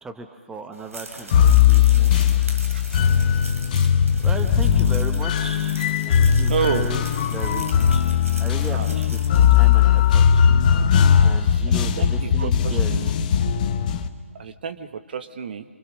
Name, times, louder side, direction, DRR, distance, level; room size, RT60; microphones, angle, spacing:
voice 1, 0.0-2.1 4.2-10.5 11.2-13.0, right 3 dB, 5° right, 6 dB, 1.3 m, -36 dB
sound 1, 0.7-10.3, right 1 dB, 85° right, 4.0 m, -41 dB
sound 2, 1.3-14.1, left 8 dB, 35° left, 1.4 m, -18 dB
voice 2, 6.5-6.9 8.7-8.9 12.0-13.1 14.4-14.9 15.1-15.6, right 7 dB, 45° right, 10 dB, 1.5 m, -28 dB
28.0 x 24.5 x 6.5 m, 1.3 s
figure-of-eight pair, 140°, 7 cm